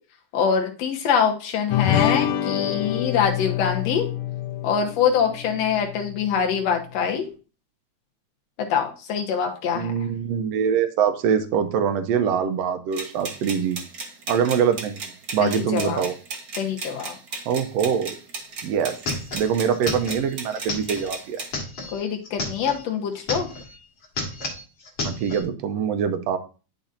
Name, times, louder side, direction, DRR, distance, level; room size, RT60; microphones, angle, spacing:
voice 1, 0.3-4.1 4.6-7.3 8.6-9.9 15.4-16.0 16.6-17.2 21.9-23.5, left 7 dB, 70° left, 2 dB, 2.2 m, -24 dB
sound 1, 1.7-6.4, left 11 dB, 85° left, 1.2 m, -26 dB
voice 2, 9.7-13.8 14.3-16.1 17.5-18.1 18.6-19.0 19.3-21.4 25.0-26.4, right 7 dB, 75° right, 8 dB, 1.7 m, -24 dB
sound 2, 12.9-21.5, right 4 dB, 55° right, 1.0 m, -36 dB
sound 3, 18.4-18.5 18.7-22.8 23.1-23.8 24.0-25.4, left 2 dB, 45° left, 2.4 m, -32 dB
11.5 x 3.9 x 2.6 m, 0.35 s
omnidirectional pair, 3.3 m